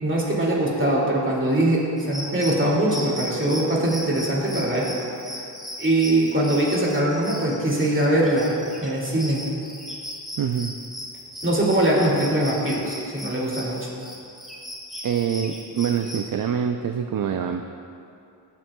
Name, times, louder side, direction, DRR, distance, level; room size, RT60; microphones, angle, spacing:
voice 1, 0.0-4.9 5.8-8.5 8.8-9.4 11.4-13.9, right 1 dB, 30° right, -4 dB, 2.3 m, -22 dB
sound 1, 2.0-16.3, equal, ahead, 2.1 m, -37 dB
voice 2, 10.4-10.8 15.0-17.7, right 8 dB, 50° right, 5 dB, 0.4 m, -25 dB
20.0 x 7.3 x 2.3 m, 2.6 s
wide cardioid pair, 80°, 43 cm